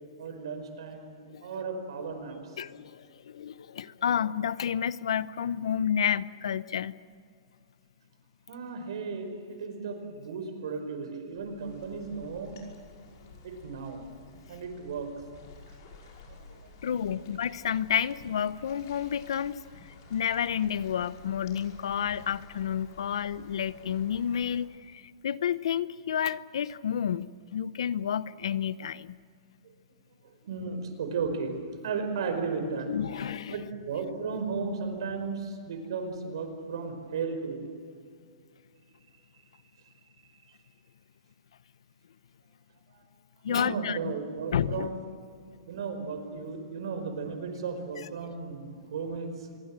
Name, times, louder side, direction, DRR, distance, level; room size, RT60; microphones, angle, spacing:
voice 1, 0.2-1.1 1.4-2.6 8.5-12.6 13.4-14.0 14.5-15.1 16.3-16.8 17.2-17.3 30.2-31.6 31.8-32.9 33.5-37.6 42.9-43.0 43.5-45.0 45.7-49.5, right 5 dB, 65° right, 6 dB, 4.9 m, -35 dB
voice 2, 2.6-6.9 16.8-19.6 20.1-29.2 32.9-33.6 43.4-44.1 44.5-44.9, left 8 dB, 80° left, 17 dB, 0.8 m, -30 dB
sound 1, 11.3-24.6, left 3 dB, 45° left, 5.6 m, -52 dB
26.0 x 22.0 x 7.6 m, 2.3 s
hypercardioid pair, 175°, 3 cm